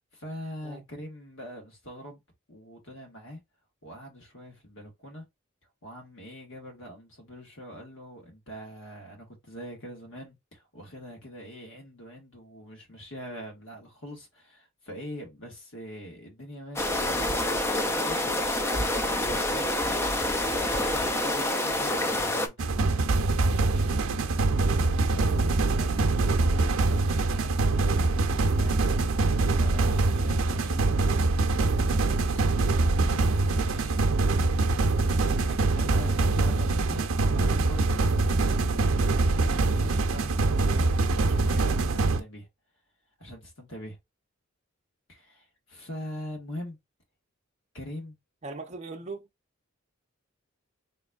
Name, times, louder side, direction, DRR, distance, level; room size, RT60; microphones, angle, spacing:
voice 1, 0.1-2.2 2.5-3.4 3.8-5.3 5.8-19.7 20.8-23.1 23.7-24.0 25.0-29.1 29.5-31.0 31.5-32.6 32.9-34.1 35.2-38.0 38.7-42.5 43.2-44.0 45.1-46.8 47.7-48.2, equal, 65° left, 1.8 m, -43 dB
sound 1, 16.8-22.5, left 1 dB, 10° left, 0.4 m, -27 dB
sound 2, 22.6-42.2, right 3 dB, 85° right, 0.6 m, -24 dB
voice 2, 48.4-49.3, right 3 dB, 35° right, 0.6 m, -39 dB
4.1 x 3.1 x 2.4 m
head